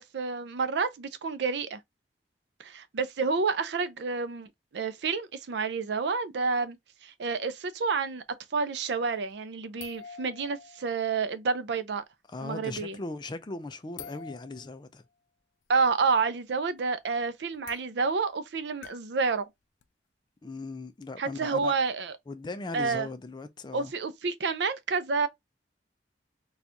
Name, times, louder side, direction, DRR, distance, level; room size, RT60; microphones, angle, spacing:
voice 1, 0.0-1.8 2.6-6.8 7.0-8.2 8.5-12.0 12.4-13.0 15.7-19.4 21.2-22.1 22.7-23.1 23.7-25.3, right 4 dB, 70° right, 0.5 m, -29 dB
sound 1, 9.1-9.3 9.8-11.3 14.0-14.8 16.5-16.6 16.8-16.9 17.5-17.8 18.8-19.2 19.8-19.9 23.9-24.0, left 7 dB, 85° left, 0.4 m, -47 dB
voice 2, 12.3-15.0 20.4-21.7 22.3-23.9, left 3 dB, 25° left, 0.4 m, -38 dB
4.2 x 2.4 x 2.5 m
head